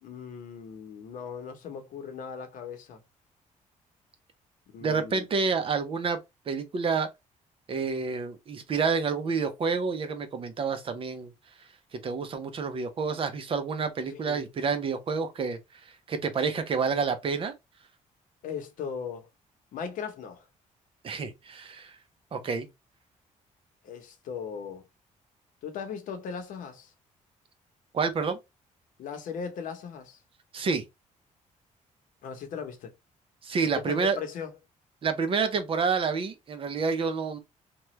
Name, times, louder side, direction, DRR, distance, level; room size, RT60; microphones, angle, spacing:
voice 1, 0.0-3.0 4.7-5.3 14.1-14.4 18.4-19.3 19.7-20.5 23.8-24.8 25.6-26.9 29.0-30.2 32.2-32.9 33.8-34.5, left 6 dB, 75° left, 0.8 m, -38 dB
voice 2, 4.8-6.2 6.5-7.1 7.7-11.3 11.6-17.5 21.0-22.0 22.3-22.7 27.9-28.4 30.5-30.8 33.4-34.2 35.0-37.4, right 5 dB, 40° right, 0.6 m, -29 dB
3.0 x 2.3 x 3.0 m
cardioid pair, 115°, 14 cm